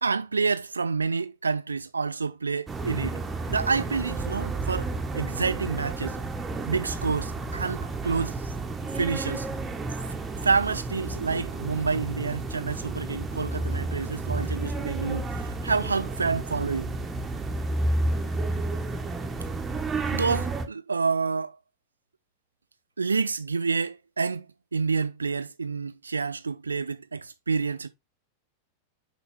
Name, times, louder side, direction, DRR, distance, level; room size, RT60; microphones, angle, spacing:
voice 1, 0.0-3.2 3.5-6.2 6.7-8.5 8.9-9.5 10.4-16.9 20.1-21.6 23.0-24.5 24.7-27.9, right 4 dB, 75° right, 0.8 m, -28 dB
sound 1, 2.7-20.6, right 2 dB, 15° right, 1.4 m, -31 dB
6.9 x 5.1 x 3.5 m
figure-of-eight pair, 90°, 0 cm